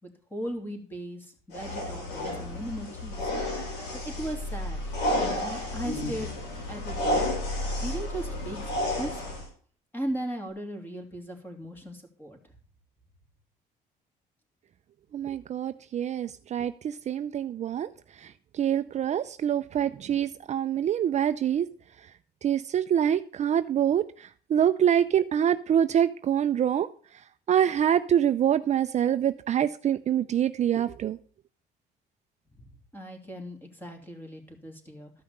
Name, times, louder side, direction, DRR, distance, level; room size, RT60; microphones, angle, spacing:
voice 1, 0.0-3.3 4.0-4.8 5.2-6.3 6.7-7.2 7.8-9.1 9.9-12.4 32.9-35.1, right 1 dB, 10° left, 4 dB, 2.8 m, -37 dB
sound 1, 1.5-9.5, left 1 dB, 85° left, 4.8 m, -31 dB
voice 2, 15.1-17.9 18.2-21.7 22.4-26.9 27.5-31.2, right 9 dB, 45° right, 11 dB, 0.5 m, -25 dB
13.5 x 5.8 x 6.7 m, 0.44 s
cardioid pair, 110°, 17 cm